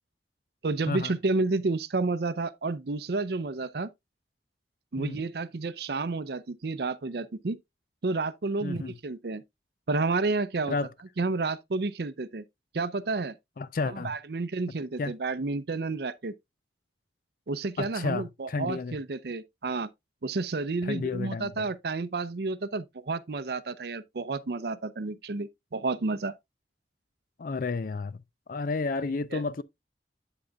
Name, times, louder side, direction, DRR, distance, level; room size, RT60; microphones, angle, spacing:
voice 1, 0.6-3.9 4.9-7.6 8.0-9.4 9.9-10.7 11.2-12.4 12.7-13.3 13.9-16.3 17.5-19.9 20.2-26.3 29.3-29.4, right 3 dB, 65° right, 0.6 m, -30 dB
voice 2, 8.6-9.0 10.7-10.9 13.6-14.1 15.0-15.2 17.8-19.0 20.8-21.7 27.4-28.2 28.5-29.6, left 3 dB, 50° left, 0.4 m, -31 dB
8.3 x 7.7 x 2.3 m
head